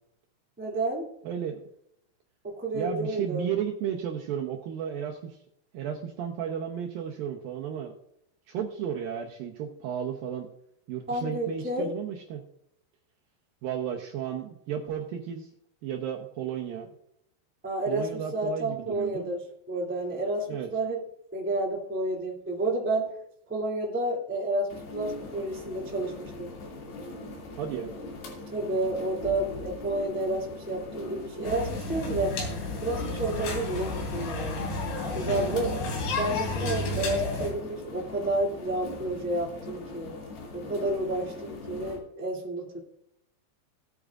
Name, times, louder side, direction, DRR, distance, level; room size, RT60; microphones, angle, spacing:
voice 1, 0.6-1.1 2.4-3.5 11.1-11.9 17.6-21.0 21.3-23.1 23.5-26.5 28.5-32.4 32.8-34.7 35.1-35.8 36.2-40.1 40.5-42.8, right 2 dB, 5° right, -2 dB, 1.3 m, -30 dB
voice 2, 1.2-1.6 2.7-5.4 5.7-7.9 8.5-10.5 10.9-12.4 13.6-15.5 15.8-16.9 17.9-19.3 20.5-20.7 27.6-27.9 35.3-35.8, right 9 dB, 75° right, 2 dB, 2.3 m, -33 dB
sound 1, 24.7-42.0, left 2 dB, 70° left, 4.5 m, -41 dB
sound 2, 31.4-37.5, left 2 dB, 85° left, 5.2 m, -32 dB
18.5 x 8.6 x 2.5 m, 0.75 s
omnidirectional pair, 5.0 m